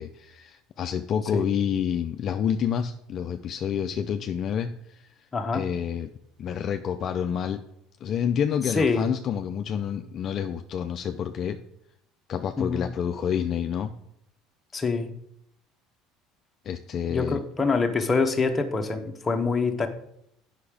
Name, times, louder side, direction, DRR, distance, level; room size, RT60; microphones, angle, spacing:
voice 1, 0.0-5.1 5.5-6.1 6.4-7.6 8.0-11.6 12.3-13.9 16.6-17.4, left 8 dB, 45° left, 6 dB, 0.5 m, -28 dB
voice 2, 5.3-5.7 8.7-9.1 12.6-12.9 14.7-15.1 17.1-19.9, left 4 dB, 20° left, 4 dB, 1.1 m, -25 dB
8.4 x 5.9 x 4.9 m, 0.74 s
supercardioid pair, 110°, 0 cm